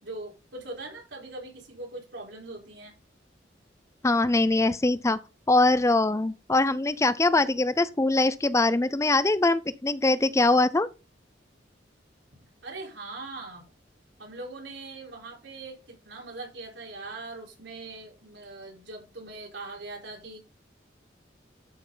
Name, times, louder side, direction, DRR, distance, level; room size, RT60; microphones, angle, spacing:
voice 1, 0.0-2.9 12.6-13.6 14.2-20.4, right 2 dB, 85° right, 4.4 m, -41 dB
voice 2, 4.0-5.2 5.5-10.9, left 2 dB, 15° left, 0.5 m, -22 dB
12.5 x 6.0 x 4.0 m
head